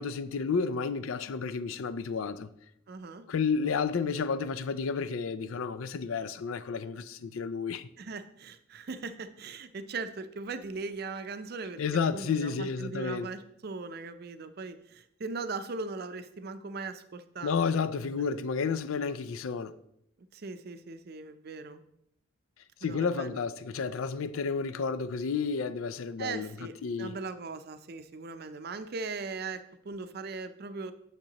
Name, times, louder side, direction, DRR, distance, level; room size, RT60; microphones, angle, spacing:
voice 1, 0.0-2.5 3.3-7.9 11.8-13.3 17.4-19.8 22.8-26.5 26.8-27.1, left 5 dB, 90° left, 0.4 m, -31 dB
voice 2, 2.9-3.2 8.0-11.8 12.1-17.9 20.3-21.8 22.8-23.4 26.2-30.9, right 4 dB, 50° right, 0.5 m, -39 dB
8.9 x 6.7 x 2.9 m
head